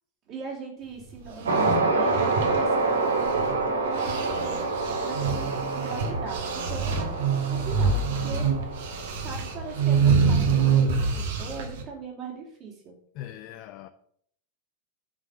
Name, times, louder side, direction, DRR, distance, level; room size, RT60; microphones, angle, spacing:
voice 1, 0.3-8.8 9.1-13.0, right 4 dB, 40° right, 2.9 m, -40 dB
sound 1, 1.3-3.6 3.9-11.8, right 5 dB, 55° right, 2.0 m, -26 dB
sound 2, 1.4-10.0, right 3 dB, 70° right, 1.8 m, -28 dB
voice 2, 13.1-13.9, left 12 dB, 40° left, 0.6 m, -40 dB
9.8 x 5.8 x 6.9 m
figure-of-eight pair, 90°, 0 cm